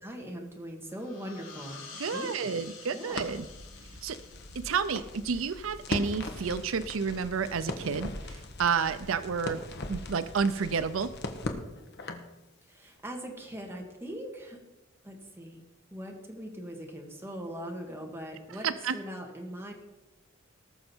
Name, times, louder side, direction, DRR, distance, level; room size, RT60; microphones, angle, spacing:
voice 1, 0.0-1.8 2.1-2.5 2.9-3.3 12.7-14.6 15.0-15.6 15.9-18.7 18.9-19.7, equal, 10° right, 1 dB, 1.9 m, -41 dB
sound 1, 0.9-6.2, left 5 dB, 80° left, 4.8 m, -49 dB
voice 2, 2.0-3.5 4.0-4.2 4.5-9.6 9.9-11.1 18.5-19.0, right 5 dB, 85° right, 12 dB, 0.5 m, -30 dB
Crackle, 3.1-12.3, left 2 dB, 55° left, 1.2 m, -40 dB
19.0 x 6.6 x 4.5 m, 1.0 s
head